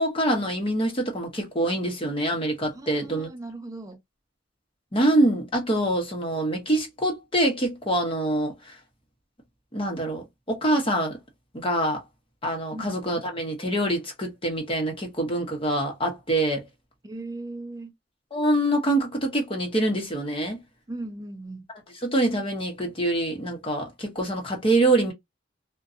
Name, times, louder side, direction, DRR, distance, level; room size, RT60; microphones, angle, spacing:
voice 1, 0.0-3.3 4.9-8.8 9.7-11.2 11.5-12.0 12.4-16.7 18.3-20.6 22.0-25.1, right 1 dB, 30° left, 0.9 m, -25 dB
voice 2, 2.7-4.0 12.7-13.0 17.0-17.9 20.9-21.6, right 2 dB, 20° right, 0.4 m, -38 dB
2.6 x 2.2 x 2.5 m
head